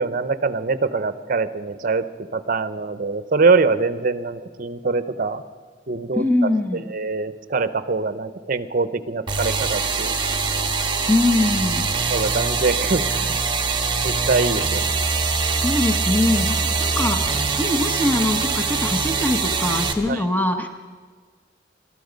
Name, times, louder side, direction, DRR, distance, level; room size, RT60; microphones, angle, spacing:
voice 1, 0.0-5.4 5.9-10.1 12.1-13.4 14.0-14.9 20.1-20.2, right 4 dB, 50° right, 13 dB, 0.8 m, -23 dB
voice 2, 6.1-6.8 11.1-11.9 15.6-20.7, left 2 dB, 10° left, 5 dB, 1.1 m, -22 dB
sound 1, 9.3-19.9, right 4 dB, 25° right, 1.3 m, -23 dB
21.5 x 13.0 x 5.3 m, 1.5 s
head